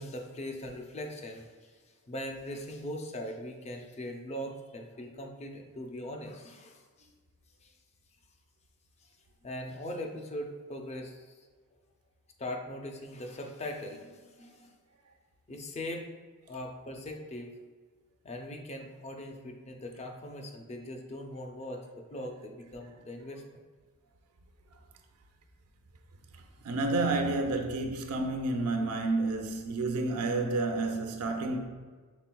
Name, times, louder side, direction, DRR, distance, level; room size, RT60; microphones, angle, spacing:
voice 1, 0.0-1.7 2.1-7.1 7.6-7.7 9.4-11.4 12.4-14.7 15.5-16.1 16.5-17.6 18.2-23.4, left 1 dB, 30° left, 0.5 m, -40 dB
voice 2, 26.6-31.7, right 2 dB, 80° right, 0.5 m, -30 dB
5.9 x 3.6 x 2.2 m
head